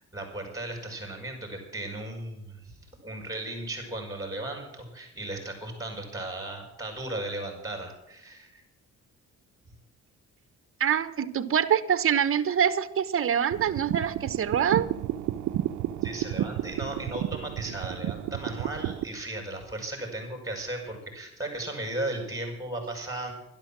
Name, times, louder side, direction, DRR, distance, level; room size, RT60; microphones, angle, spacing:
voice 1, 0.1-8.6 16.0-23.3, right 1 dB, 10° right, 2 dB, 5.9 m, -36 dB
voice 2, 10.8-14.9, right 8 dB, 45° right, 13 dB, 1.1 m, -25 dB
sound 1, 13.5-19.0, right 12 dB, 75° right, 0.7 m, -32 dB
12.0 x 11.5 x 7.5 m, 0.87 s
cardioid pair, 90°, 30 cm